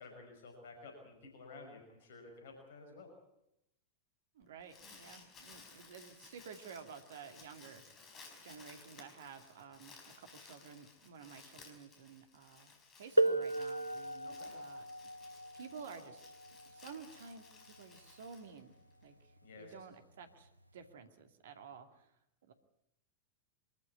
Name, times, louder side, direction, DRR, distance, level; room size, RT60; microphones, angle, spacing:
voice 1, 0.0-3.1 14.2-14.5 19.4-19.7, left 3 dB, 60° left, 3 dB, 5.7 m, -53 dB
voice 2, 4.3-7.8 8.4-14.8 15.2-16.2 16.7-18.8 19.0-22.1 22.5-22.6, right 6 dB, 60° right, 7 dB, 2.3 m, -52 dB
Crumpling crinkling, 4.4-19.0, left 4 dB, 25° left, 5.0 m, -58 dB
sound 1, 13.2-18.6 19.7-19.8 20.6-20.8, right 2 dB, 85° right, 0.8 m, -36 dB
24.0 x 14.0 x 9.6 m, 0.84 s
figure-of-eight pair, 90°, 0 cm